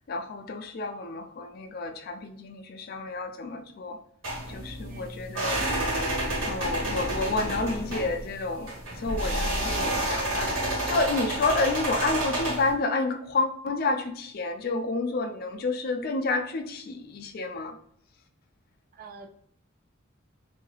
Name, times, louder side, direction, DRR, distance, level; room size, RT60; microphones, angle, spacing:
voice 1, 0.1-4.0 4.5-5.6 6.4-17.8, left 3 dB, 45° left, 7 dB, 0.3 m, -30 dB
sound 1, 4.2-12.7, right 1 dB, 70° right, 1.3 m, -29 dB
voice 2, 4.9-5.2 18.9-19.4, right 4 dB, 40° right, 5 dB, 0.4 m, -47 dB
2.7 x 2.3 x 3.1 m, 0.66 s
head